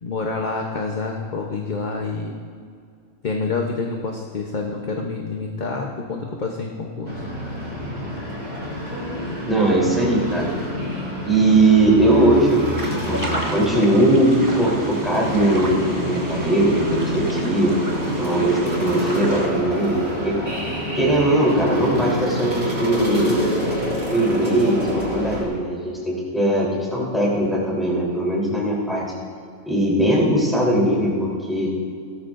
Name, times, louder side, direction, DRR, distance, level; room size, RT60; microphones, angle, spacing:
voice 1, 0.0-2.4 3.2-7.2, left 4 dB, 40° left, 1 dB, 0.9 m, -27 dB
sound 1, 7.0-25.4, equal, 45° right, 3.4 m, -27 dB
voice 2, 9.5-10.5 11.3-13.2 13.5-17.7 18.2-20.4 20.9-23.5 24.1-29.0 29.6-31.7, right 1 dB, ahead, -5 dB, 3.4 m, -20 dB
sound 2, 12.8-19.5, right 1 dB, 15° right, 1.3 m, -33 dB
17.0 x 13.5 x 2.6 m, 2.2 s
omnidirectional pair, 1.4 m